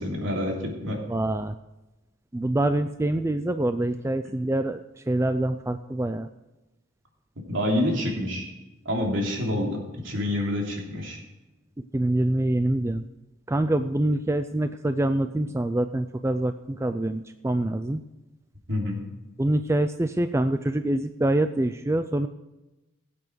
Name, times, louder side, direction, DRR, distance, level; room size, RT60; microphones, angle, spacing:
voice 1, 0.0-1.0 7.5-8.5 8.8-9.8 10.0-11.2 18.7-19.0, left 1 dB, 65° right, 0 dB, 3.1 m, -27 dB
voice 2, 1.1-1.5 2.3-4.8 5.1-6.3 11.9-13.0 13.5-18.0 19.4-22.3, right 1 dB, 15° right, 9 dB, 0.3 m, -25 dB
17.0 x 8.5 x 4.6 m, 1.0 s
head